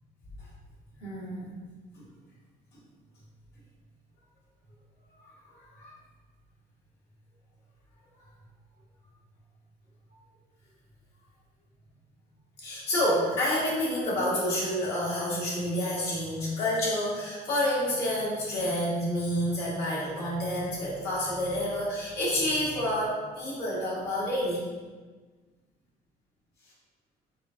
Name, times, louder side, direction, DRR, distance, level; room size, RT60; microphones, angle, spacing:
voice 1, 1.0-1.5 5.6-5.9 12.6-24.7, left 1 dB, 75° left, -6 dB, 1.4 m, -29 dB
4.8 x 2.8 x 2.4 m, 1.4 s
cardioid pair, 110°, 17 cm